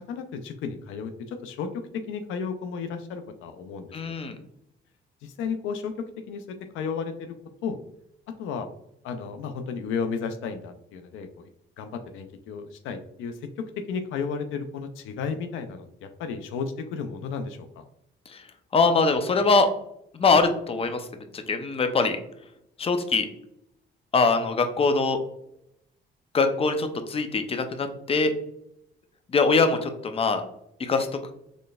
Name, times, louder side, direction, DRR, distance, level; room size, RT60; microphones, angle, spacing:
voice 1, 0.0-4.1 5.2-7.3 7.6-7.8 8.4-8.7 9.0-11.5 11.8-17.8, left 5 dB, 90° left, 8 dB, 0.4 m, -33 dB
voice 2, 3.9-4.4 18.3-18.4 18.7-19.7 20.1-21.1 21.5-22.2 22.8-23.3 24.1-25.2 26.3-28.3 29.3-30.4 30.8-31.1, left 4 dB, 30° left, 7 dB, 0.5 m, -22 dB
4.1 x 3.1 x 2.3 m, 0.78 s
cardioid pair, 90°, 20 cm